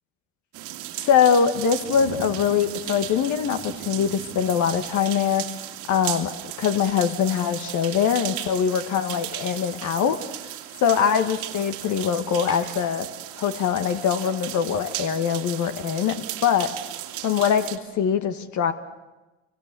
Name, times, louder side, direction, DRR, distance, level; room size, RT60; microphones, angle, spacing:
sound 1, 0.5-17.8, right 13 dB, 85° right, 2.3 m, -36 dB
voice 1, 1.0-5.5 5.9-10.2 10.8-13.1 13.3-16.7 17.2-18.7, left 7 dB, 65° left, 8 dB, 1.7 m, -23 dB
sound 2, 9.3-9.6 12.4-12.9, left 4 dB, 80° left, 5.7 m, -41 dB
28.5 x 25.5 x 6.9 m, 1.1 s
supercardioid pair, 75°, 31 cm